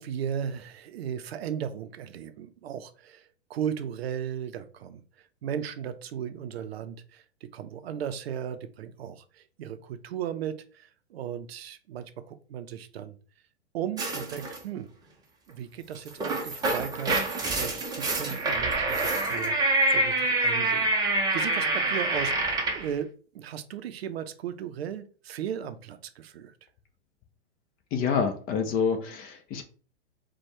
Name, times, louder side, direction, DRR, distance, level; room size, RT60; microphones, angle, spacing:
voice 1, 0.0-5.0 5.4-13.1 13.7-14.9 15.5-19.6 19.9-26.5, right 9 dB, 60° right, 0.6 m, -36 dB
sound 1, 14.0-14.6 15.9-22.9, right 2 dB, 10° right, 0.7 m, -26 dB
voice 2, 27.9-29.6, left 6 dB, 25° left, 0.7 m, -27 dB
4.4 x 2.3 x 4.4 m
hypercardioid pair, 120°, 34 cm